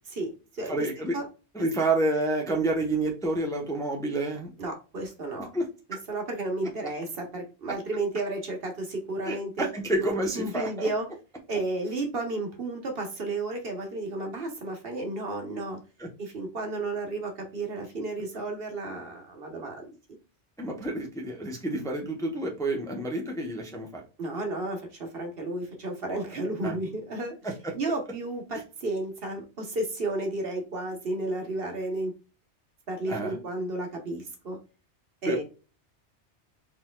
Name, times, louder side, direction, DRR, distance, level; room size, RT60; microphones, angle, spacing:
voice 1, 0.1-0.7 1.1-1.3 4.6-5.5 6.1-9.7 10.0-10.1 10.3-11.0 11.5-15.8 16.2-19.9 24.2-27.3 27.7-32.1 32.9-34.6 35.2-35.4, right 2 dB, 55° right, 3 dB, 1.2 m, -32 dB
voice 2, 0.7-1.2 1.5-4.5 5.5-6.0 9.2-10.9 16.0-16.1 20.6-24.0 26.6-26.8 27.4-27.7 28.5-28.6 33.1-33.4 35.3-35.4, right 2 dB, 5° left, 0 dB, 0.7 m, -29 dB
4.2 x 4.1 x 2.2 m, 0.33 s
omnidirectional pair, 1.2 m